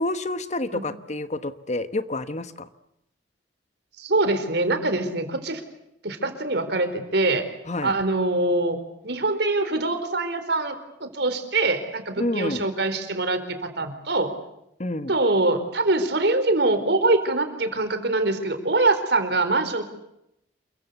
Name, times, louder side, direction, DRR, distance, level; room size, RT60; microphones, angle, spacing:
voice 1, 0.0-2.7 7.7-7.9 12.2-12.6 14.8-15.1, left 2 dB, 40° left, 11 dB, 1.3 m, -28 dB
voice 2, 4.0-5.6 6.0-7.5 7.8-8.8 9.0-14.3 15.1-19.8, right 2 dB, 65° right, 8 dB, 4.4 m, -24 dB
28.5 x 23.5 x 8.2 m, 0.82 s
head